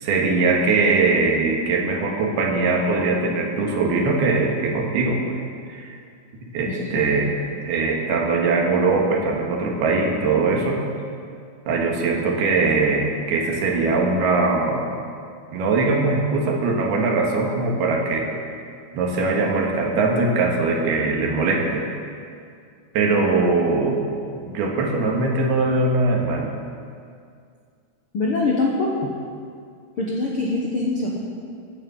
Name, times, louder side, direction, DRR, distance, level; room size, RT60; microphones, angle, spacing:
voice 1, 0.0-5.4 5.7-6.0 6.5-7.3 7.6-10.8 11.7-14.9 15.5-18.3 18.9-22.0 23.0-24.0 24.3-26.5, right 3 dB, 85° right, 0 dB, 3.7 m, -21 dB
voice 2, 6.7-7.0 28.1-29.1 30.0-31.2, left 3 dB, 80° left, -2 dB, 1.2 m, -23 dB
15.0 x 10.5 x 6.9 m, 2.3 s
omnidirectional pair, 4.4 m